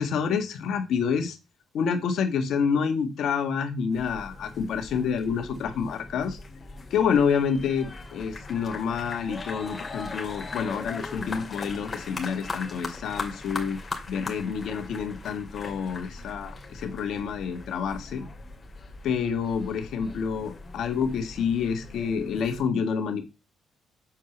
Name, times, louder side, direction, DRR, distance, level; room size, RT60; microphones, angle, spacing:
voice 1, 0.0-1.4 1.7-6.4 6.9-13.8 14.1-18.2 19.0-23.2, left 6 dB, 70° left, 7 dB, 1.7 m, -28 dB
sound 1, 3.9-22.6, left 3 dB, 30° left, 2.5 m, -40 dB
7.5 x 4.8 x 6.0 m, 0.26 s
cardioid pair, 80°, 0 cm